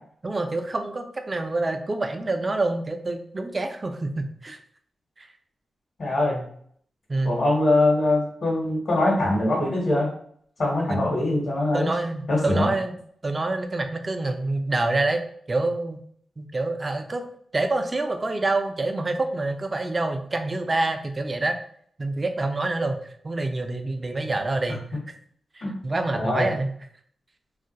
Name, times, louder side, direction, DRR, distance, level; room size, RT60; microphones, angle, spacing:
voice 1, 0.2-4.6 5.2-5.3 7.1-7.4 10.9-11.1 11.7-13.0 13.2-15.2 15.5-16.0 16.4-17.2 17.5-21.6 22.0-23.0 23.2-24.8 25.5-26.7, right 2 dB, 40° right, 6 dB, 0.5 m, -27 dB
voice 2, 6.0-6.4 7.2-10.1 10.6-11.9 12.3-12.7 25.6-25.8 26.1-26.5, left 2 dB, 70° left, -4 dB, 1.0 m, -22 dB
2.4 x 2.2 x 3.9 m, 0.62 s
supercardioid pair, 45°, 0 cm